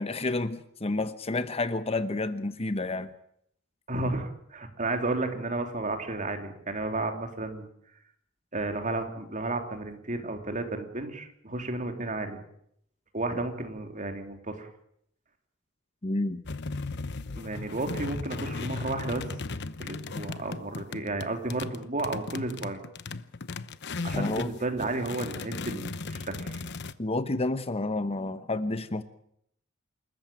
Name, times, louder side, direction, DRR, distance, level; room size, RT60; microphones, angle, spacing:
voice 1, 0.0-3.1 16.0-16.4 24.1-24.6 27.0-29.0, left 2 dB, 30° left, 12 dB, 0.9 m, -30 dB
voice 2, 3.9-7.7 8.5-12.4 13.1-14.7 17.4-19.2 19.8-22.8 24.0-26.6, right 2 dB, 40° right, 5 dB, 3.4 m, -32 dB
sound 1, 16.5-24.5 24.8-26.9, left 3 dB, 55° left, 1.0 m, -36 dB
28.0 x 14.5 x 9.2 m, 0.72 s
head